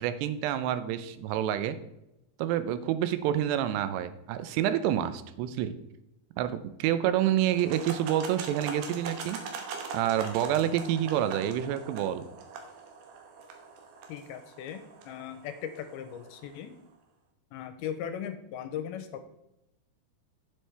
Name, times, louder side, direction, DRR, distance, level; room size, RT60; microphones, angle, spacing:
voice 1, 0.0-1.8 2.4-5.7 6.4-9.4 9.9-12.3, right 11 dB, 90° right, 12 dB, 2.8 m, -28 dB
sound 1, 7.5-16.6, right 5 dB, 70° right, 2.9 m, -42 dB
voice 2, 14.1-16.7 17.5-19.2, left 9 dB, 80° left, 9 dB, 2.4 m, -38 dB
9.4 x 8.0 x 3.3 m, 0.87 s
omnidirectional pair, 4.7 m